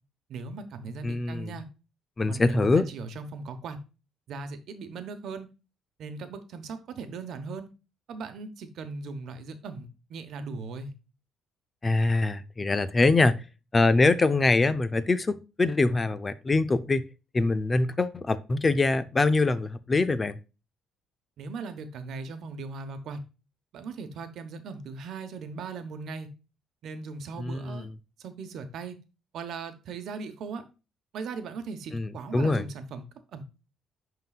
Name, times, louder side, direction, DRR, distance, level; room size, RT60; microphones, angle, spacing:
voice 1, 0.3-1.7 2.3-3.8 4.3-5.5 6.0-7.7 8.1-10.9 21.4-23.2 23.7-26.3 26.8-27.9 28.2-29.0 29.3-30.7 31.1-33.0 33.3-33.4, right 4 dB, 65° right, 1.0 m, -38 dB
voice 2, 1.0-1.5 2.2-2.9 11.8-13.4 13.7-17.0 17.3-20.4 27.4-27.8 31.9-32.6, left 3 dB, 25° left, 0.5 m, -24 dB
11.0 x 3.8 x 2.4 m
cardioid pair, 115°, 0 cm